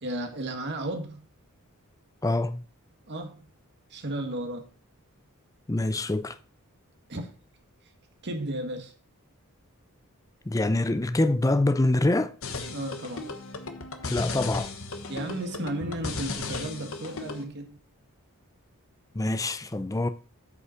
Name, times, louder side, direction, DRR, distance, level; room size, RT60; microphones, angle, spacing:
voice 1, 0.0-1.3 3.1-3.4 3.9-4.7 7.1-7.3 8.2-8.9 12.7-13.2 15.1-17.8, right 1 dB, 50° right, 1.7 m, -34 dB
voice 2, 2.2-2.6 5.7-6.4 10.5-12.3 14.0-14.7 19.2-20.1, left 2 dB, 15° left, 0.5 m, -25 dB
sound 1, 12.4-17.4, left 3 dB, 65° left, 1.3 m, -36 dB
8.1 x 5.5 x 5.7 m
head